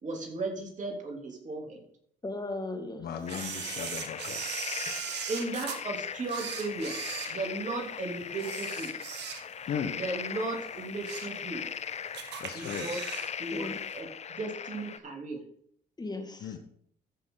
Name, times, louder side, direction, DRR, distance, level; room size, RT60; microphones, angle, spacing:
voice 1, 0.0-1.8 5.3-7.0 7.3-8.9 9.9-11.7 12.5-13.0 13.4-14.1 14.4-15.4, right 2 dB, 45° right, 0 dB, 3.3 m, -36 dB
voice 2, 2.2-3.1 13.5-13.8 16.0-16.6, left 2 dB, 20° left, 5 dB, 2.0 m, -37 dB
voice 3, 3.0-4.5 4.9-5.0 9.7-9.9 12.4-13.0 16.4-16.6, left 7 dB, 65° left, 6 dB, 1.3 m, -36 dB
sound 1, 3.3-15.0, left 7 dB, 40° left, 0.5 m, -39 dB
Camera, 3.3-5.8 6.2-7.9 8.3-9.7 10.1-10.3 10.8-11.4 11.7-11.8 12.1-13.3 13.6-13.7, right 8 dB, 70° right, 1.3 m, -39 dB
14.5 x 6.1 x 4.0 m, 0.67 s
supercardioid pair, 70°, 18 cm